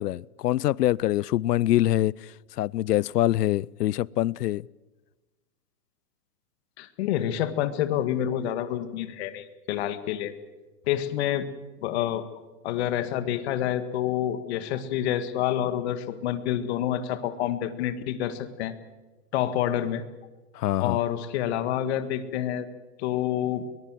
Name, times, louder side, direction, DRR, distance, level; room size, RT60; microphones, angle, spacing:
voice 1, 0.0-4.7 20.5-21.0, left 14 dB, 80° left, 0.6 m, -25 dB
voice 2, 6.8-10.3 10.9-11.5 11.8-12.2 12.6-18.7 19.3-20.0 20.8-22.7 23.0-23.6, left 11 dB, 45° left, 1.8 m, -28 dB
22.5 x 20.0 x 7.6 m
hypercardioid pair, 155°, 46 cm